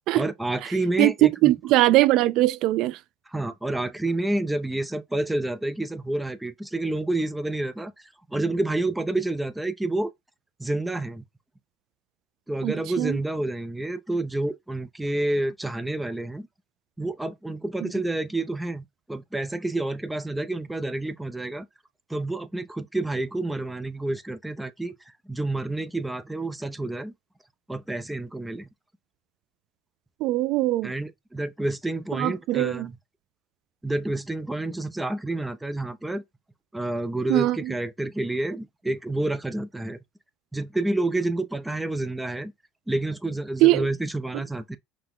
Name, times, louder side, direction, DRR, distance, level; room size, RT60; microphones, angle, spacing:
voice 1, 0.2-1.5 3.3-10.1 10.6-11.2 12.5-16.5 17.0-21.7 22.1-24.9 25.3-27.1 27.7-28.7 30.8-32.9 33.8-36.2 36.7-40.0 40.5-42.5 42.9-44.8, right 2 dB, 5° right, 0.5 m, -29 dB
voice 2, 1.0-3.0 12.6-13.2 17.8-17.9 30.2-30.9 32.2-32.9 37.3-37.7 43.6-43.9, right 17 dB, 65° right, 0.3 m, -21 dB
5.8 x 2.1 x 3.6 m
supercardioid pair, 105°, 0 cm